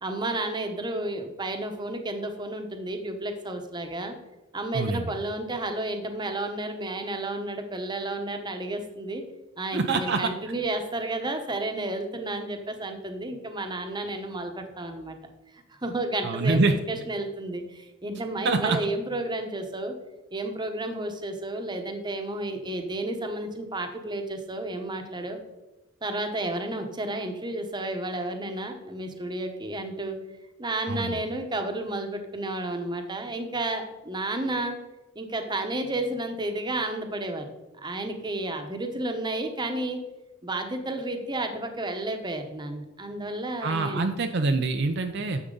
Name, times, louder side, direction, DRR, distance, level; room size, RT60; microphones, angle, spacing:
voice 1, 0.0-4.1 4.5-9.2 9.6-15.2 15.5-16.6 16.9-19.9 20.3-25.4 26.0-30.2 30.6-34.8 35.1-37.5 37.8-40.0 40.4-44.0, right 2 dB, 20° right, 5 dB, 1.0 m, -32 dB
voice 2, 4.7-5.0 9.7-10.3 16.2-16.8 18.4-18.8 30.9-31.2 43.6-45.4, right 3 dB, 55° right, 6 dB, 0.5 m, -25 dB
9.8 x 7.1 x 3.9 m, 1.0 s
head